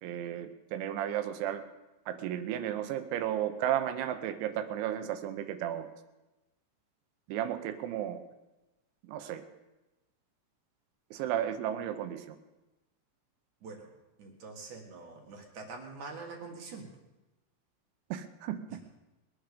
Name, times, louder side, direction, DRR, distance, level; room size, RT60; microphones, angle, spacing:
voice 1, 0.0-1.6 2.1-5.9 7.3-8.2 9.0-9.4 11.1-12.4 18.1-18.8, right 11 dB, 80° right, 9 dB, 3.2 m, -34 dB
voice 2, 14.2-16.9, right 4 dB, 55° right, 1 dB, 2.3 m, -44 dB
21.5 x 9.0 x 5.2 m, 1.1 s
omnidirectional pair, 5.4 m